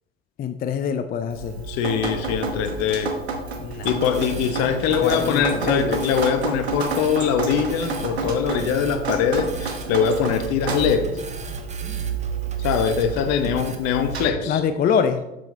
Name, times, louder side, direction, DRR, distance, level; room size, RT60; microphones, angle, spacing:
voice 1, 0.4-1.6 3.6-3.9 5.0-6.0 14.5-15.2, left 7 dB, 30° left, 9 dB, 0.5 m, -24 dB
Drip, 1.3-14.3, right 4 dB, 85° right, 1.1 m, -30 dB
voice 2, 1.7-3.2 3.8-11.1 12.6-14.6, left 7 dB, 55° left, 9 dB, 1.1 m, -22 dB
sound 1, 3.8-13.8, right 4 dB, 20° right, 1.0 m, -41 dB
7.5 x 7.1 x 3.3 m, 0.95 s
figure-of-eight pair, 70°, 31 cm